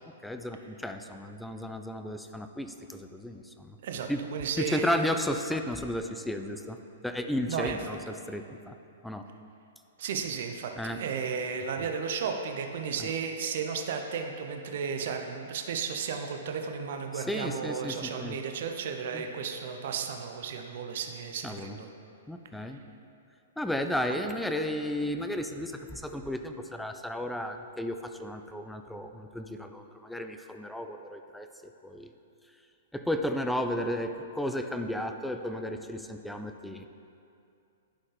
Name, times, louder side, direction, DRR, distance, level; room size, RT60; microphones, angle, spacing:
voice 1, 0.2-3.8 4.1-4.2 4.6-6.8 7.0-8.8 9.0-9.3 10.8-11.0 13.0-13.1 17.1-18.4 19.1-19.3 21.4-21.8 22.3-22.8 23.6-31.5 31.8-32.1 32.9-36.9, left 1 dB, 5° left, 6 dB, 0.4 m, -33 dB
voice 2, 3.8-4.9 7.5-7.8 10.0-21.9 22.7-22.8, right 6 dB, 60° right, 4 dB, 0.6 m, -34 dB
11.0 x 4.2 x 3.3 m, 2.6 s
hypercardioid pair, 125°, 0 cm